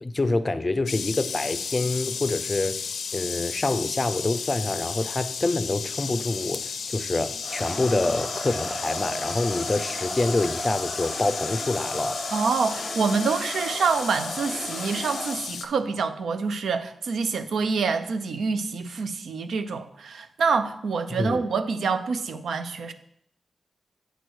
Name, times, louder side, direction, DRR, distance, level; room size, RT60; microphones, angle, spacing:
voice 1, 0.0-12.2 21.1-21.4, left 2 dB, 30° left, 0.5 m, -26 dB
sound 1, 0.9-15.7, left 6 dB, 85° left, 0.4 m, -34 dB
Crowd, 7.4-15.5, equal, 30° right, 1.7 m, -35 dB
voice 2, 12.3-22.9, right 5 dB, 85° right, 0.5 m, -26 dB
8.0 x 3.0 x 6.2 m
cardioid pair, 65°, 0 cm